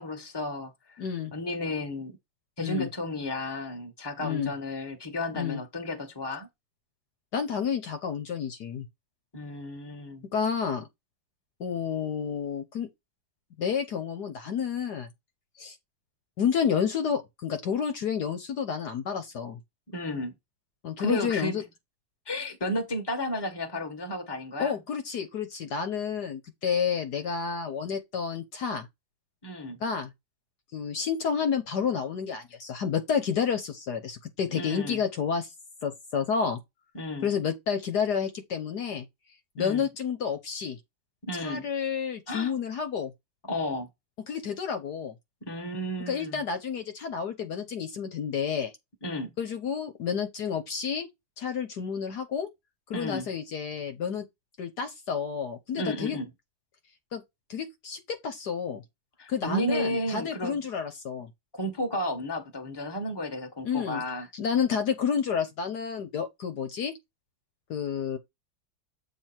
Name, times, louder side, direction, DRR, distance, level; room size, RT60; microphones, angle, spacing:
voice 1, 0.0-1.0 1.3-2.2 2.6-6.5 9.3-10.2 19.9-20.3 21.0-21.6 22.3-24.7 29.4-29.8 34.5-35.0 36.9-37.3 39.6-39.9 41.2-41.6 42.3-42.5 43.4-43.9 45.4-46.4 49.0-49.3 52.9-53.3 55.7-56.3 59.2-60.6 61.5-64.3, left 1 dB, 15° left, 1.4 m, -33 dB
voice 2, 1.0-1.3 2.6-2.9 4.2-4.5 5.3-5.6 7.3-8.8 10.3-10.9 11.6-12.9 13.6-15.1 15.6-15.7 16.4-19.6 20.8-21.6 24.6-28.9 29.8-30.1 30.7-35.5 35.8-36.6 37.2-39.0 39.6-40.8 41.4-43.1 44.3-45.1 46.1-48.7 49.4-51.1 51.4-52.5 52.9-54.3 54.6-56.2 57.1-57.2 57.5-58.8 59.3-61.3 63.6-64.0 64.3-66.9 67.7-68.2, left 7 dB, 60° left, 1.5 m, -30 dB
7.7 x 3.7 x 4.4 m
omnidirectional pair, 2.0 m